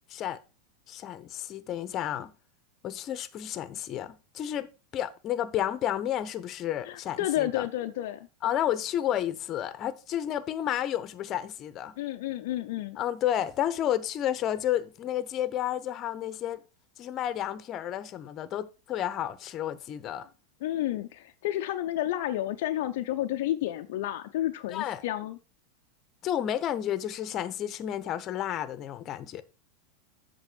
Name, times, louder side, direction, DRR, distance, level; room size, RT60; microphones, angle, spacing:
voice 1, 0.9-2.3 2.8-7.7 8.4-11.9 13.0-16.6 17.0-20.3 24.7-25.0 26.2-29.4, left 11 dB, 40° left, 0.8 m, -31 dB
voice 2, 6.8-8.3 12.0-13.0 20.6-25.4, left 13 dB, 65° left, 0.5 m, -31 dB
8.2 x 6.1 x 4.4 m
hypercardioid pair, 95°, 0 cm